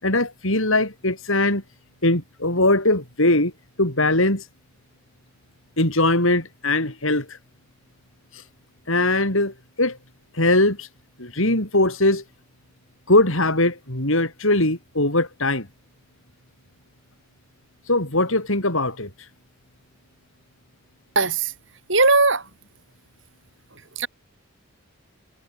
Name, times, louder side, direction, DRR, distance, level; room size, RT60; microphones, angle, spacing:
voice 1, 0.0-1.6 2.0-3.5 3.8-4.4 5.8-7.4 8.9-10.0 10.3-10.9 11.2-12.2 13.1-15.7 17.9-19.1, left 2 dB, 70° left, 6.9 m, -21 dB
voice 2, 21.1-21.5 21.9-22.4 24.0-24.1, right 3 dB, 60° right, 6.6 m, -18 dB
head